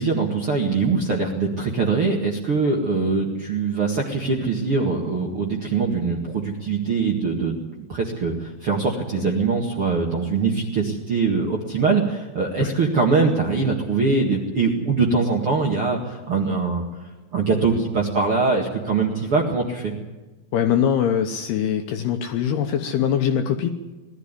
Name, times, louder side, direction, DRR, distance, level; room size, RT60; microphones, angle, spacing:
voice 1, 0.0-16.8 17.3-19.9, right 4 dB, 50° right, -1 dB, 1.7 m, -22 dB
voice 2, 20.5-23.7, left 9 dB, 75° left, 6 dB, 2.5 m, -22 dB
20.5 x 13.5 x 9.9 m, 1.2 s
omnidirectional pair, 5.5 m